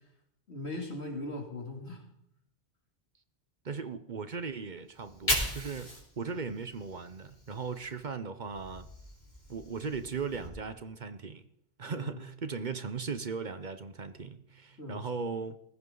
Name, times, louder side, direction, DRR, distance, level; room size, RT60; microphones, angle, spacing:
voice 1, 0.5-2.0 6.3-6.4 11.9-12.2 14.8-15.1, left 2 dB, 80° left, 3.3 m, -39 dB
voice 2, 3.6-8.9 9.5-11.4 11.8-15.6, right 5 dB, 45° right, 0.9 m, -38 dB
Fire, 4.9-8.1 8.4-10.5, left 1 dB, 40° left, 3.8 m, -38 dB
19.0 x 15.5 x 3.9 m
omnidirectional pair, 1.1 m